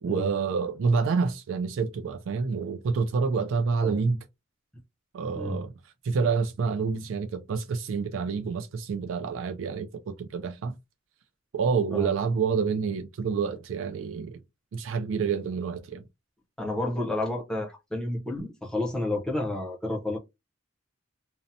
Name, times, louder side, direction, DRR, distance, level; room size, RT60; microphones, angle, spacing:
voice 1, 0.0-4.2 5.1-5.7 6.0-10.7 11.5-14.4 14.7-16.0, right 5 dB, 70° right, 0.3 m, -28 dB
voice 2, 16.6-20.2, left 1 dB, 5° left, 0.7 m, -30 dB
2.7 x 2.1 x 2.6 m
head